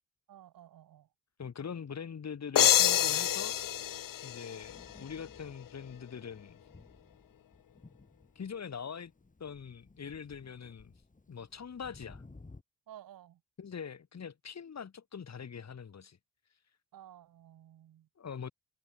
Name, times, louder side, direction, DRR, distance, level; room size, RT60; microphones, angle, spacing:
voice 1, 0.3-1.1 12.9-13.4 16.9-18.1, right 11 dB, 85° right, 2.9 m, -53 dB
voice 2, 1.4-3.5 4.2-6.6 8.3-9.1 9.4-10.9 11.3-12.2 13.6-16.2 18.2-18.5, left 7 dB, 50° left, 4.6 m, -43 dB
sound 1, 2.6-5.2, left 11 dB, 75° left, 1.4 m, -27 dB
Thunder, 3.1-12.6, left 3 dB, 25° left, 5.7 m, -57 dB
cardioid pair, 85°, 33 cm